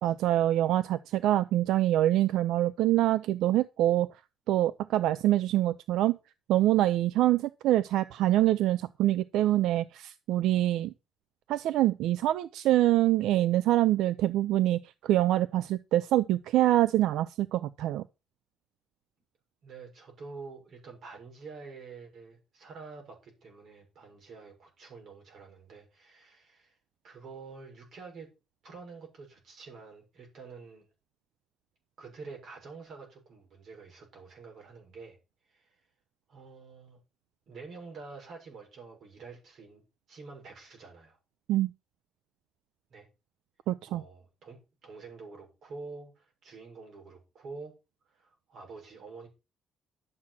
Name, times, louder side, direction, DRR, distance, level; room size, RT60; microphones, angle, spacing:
voice 1, 0.0-4.1 4.5-6.2 6.5-10.9 11.5-18.0 41.5-41.7 43.7-44.0, right 14 dB, 80° right, 0.6 m, -25 dB
voice 2, 19.6-26.7 27.0-28.3 28.6-30.9 32.0-35.2 35.5-35.8 36.3-37.0 37.5-39.8 40.1-41.2 42.9-43.1 43.8-47.7 48.1-49.3, right 4 dB, 45° right, 6.6 m, -47 dB
12.0 x 7.4 x 5.9 m
cardioid pair, 175°, 0 cm